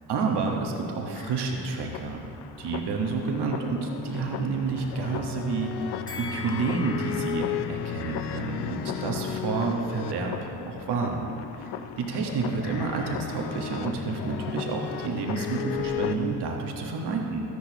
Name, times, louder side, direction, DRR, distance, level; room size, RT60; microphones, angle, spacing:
voice 1, 0.1-2.3 2.6-5.7 6.1-11.3 12.0-17.4, right 4 dB, 70° right, 1 dB, 1.4 m, -29 dB
sound 1, 1.1-16.2, left 10 dB, 75° left, 0.6 m, -35 dB
Bell, 6.1-9.3 9.6-9.7, left 5 dB, 10° left, 2.5 m, -43 dB
13.0 x 11.0 x 2.9 m, 2.9 s
supercardioid pair, 70°, 41 cm